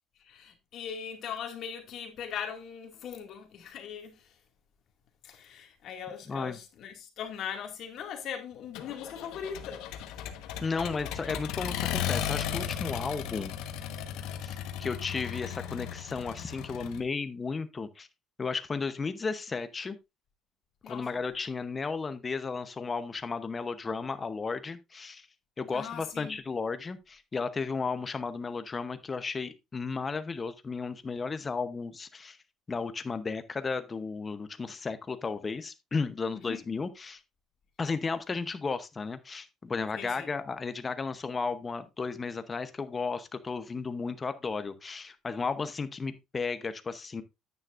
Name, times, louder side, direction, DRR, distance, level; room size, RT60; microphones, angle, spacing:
voice 1, 0.2-4.4 5.2-10.2 20.8-21.1 25.7-26.4 36.3-36.6 39.9-40.3, left 8 dB, 45° left, 2.1 m, -40 dB
voice 2, 6.3-6.6 10.6-13.5 14.4-18.1 18.4-20.0 20.9-25.3 25.6-32.4 32.7-37.2 37.8-47.2, left 4 dB, 20° left, 0.8 m, -34 dB
Accelerating revving vroom, 8.7-17.0, left 9 dB, 70° left, 1.2 m, -36 dB
9.6 x 9.4 x 2.5 m
cardioid pair, 165°, 0 cm